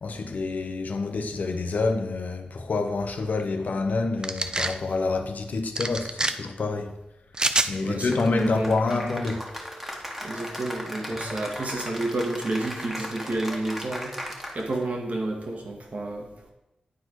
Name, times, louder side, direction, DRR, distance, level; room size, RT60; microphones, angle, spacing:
voice 1, 0.0-7.0 7.7-9.4, left 3 dB, 65° left, 0.8 m, -27 dB
sound 1, 4.2-4.8 5.8-6.3 7.3-7.7, right 2 dB, 25° right, 0.5 m, -25 dB
voice 2, 7.8-8.9 10.2-14.2 14.5-16.3, right 2 dB, 55° right, 1.8 m, -30 dB
Cheering / Applause, 8.1-14.8, equal, 10° right, 1.6 m, -37 dB
9.4 x 4.3 x 4.6 m
cardioid pair, 50°, 3 cm